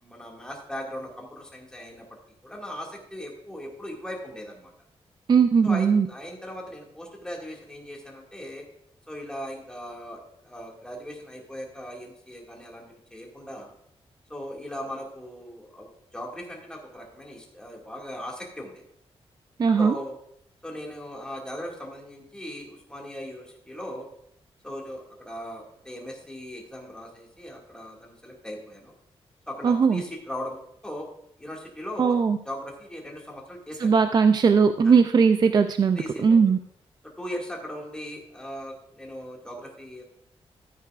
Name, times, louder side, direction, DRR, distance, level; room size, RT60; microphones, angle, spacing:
voice 1, 0.0-2.2 2.4-4.7 5.6-8.6 9.1-13.7 14.3-18.8 19.8-20.2 20.6-24.1 24.6-28.9 29.5-30.6 30.8-31.1 31.4-32.2 32.5-33.9 36.0-36.4 37.2-40.0, equal, 5° left, -2 dB, 2.1 m, -38 dB
voice 2, 5.3-6.1 19.6-20.0 29.6-30.0 32.0-32.4 33.8-36.6, right 5 dB, 40° right, 9 dB, 0.4 m, -19 dB
13.5 x 9.2 x 2.5 m, 0.72 s
wide cardioid pair, 145°, 11 cm